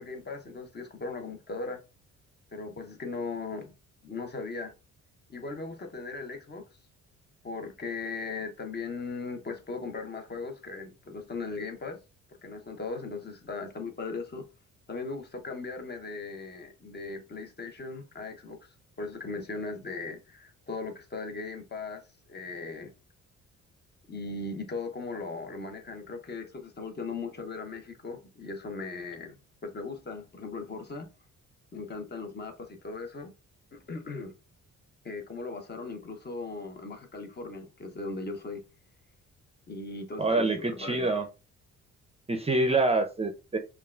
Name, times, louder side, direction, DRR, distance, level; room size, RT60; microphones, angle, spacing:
voice 1, 0.0-1.8 2.5-3.7 4.0-4.7 5.3-6.6 7.4-12.0 12.4-14.4 14.9-22.0 22.3-22.9 24.1-29.3 29.6-31.1 31.7-33.3 33.7-34.3 35.0-38.6 39.7-41.1, left 3 dB, 35° left, 0.9 m, -38 dB
voice 2, 40.2-41.3 42.3-43.6, right 2 dB, 20° right, 0.5 m, -26 dB
5.3 x 2.4 x 2.4 m
cardioid pair, 90°, 30 cm